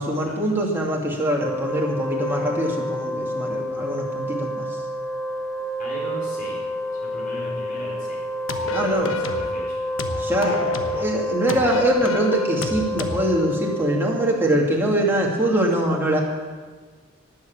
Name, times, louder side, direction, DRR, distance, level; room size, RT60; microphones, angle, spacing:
voice 1, 0.0-4.8 8.7-9.1 10.2-10.6 10.9-16.2, right 1 dB, 10° right, -3 dB, 2.4 m, -23 dB
Wind instrument woodwind instrument, 1.3-14.7, left 1 dB, 10° left, 0.7 m, -29 dB
voice 2, 5.8-6.6 6.9-8.2 8.5-9.8 10.3-10.6, equal, 40° left, -3 dB, 4.6 m, -37 dB
sound 1, 8.5-9.5 10.0-11.1 11.5-13.3, left 1 dB, 65° left, 1.2 m, -28 dB
19.0 x 7.7 x 7.3 m, 1.4 s
head